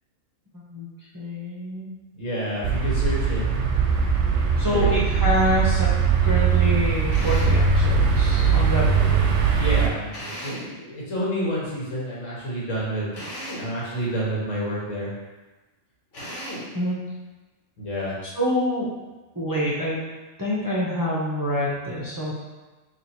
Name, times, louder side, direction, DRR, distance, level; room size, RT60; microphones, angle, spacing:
voice 1, 0.5-0.9 1.1-1.9 4.6-5.9 6.2-9.2 16.7-17.0 18.4-18.9 19.4-20.0 20.4-22.3, equal, 20° right, -8 dB, 0.6 m, -26 dB
voice 2, 2.1-3.4 4.5-4.9 9.6-13.1 13.5-15.1 17.8-18.1, right 1 dB, 90° left, -6 dB, 1.5 m, -29 dB
sound 1, 2.6-9.9, right 6 dB, 75° right, 0.9 m, -20 dB
Drill, 7.1-7.7 10.1-10.8 13.1-13.7 16.1-16.7, equal, 70° left, 1.5 m, -35 dB
3.0 x 3.0 x 4.1 m, 1.2 s
omnidirectional pair, 1.3 m